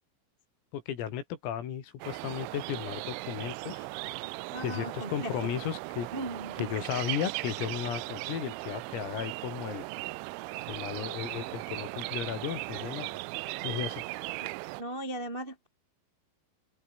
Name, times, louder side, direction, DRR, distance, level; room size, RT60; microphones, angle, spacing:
voice 1, 0.7-3.9 4.6-6.1 6.6-9.9 10.7-13.2 13.6-14.0, left 10 dB, 90° left, 5.9 m, -35 dB
sound 1, 2.0-14.8, right 21 dB, 80° right, 2.8 m, -38 dB
voice 2, 4.5-5.5 6.1-6.7 14.4-14.5 14.8-15.7, right 1 dB, 45° right, 0.6 m, -38 dB
omnidirectional pair, 5.9 m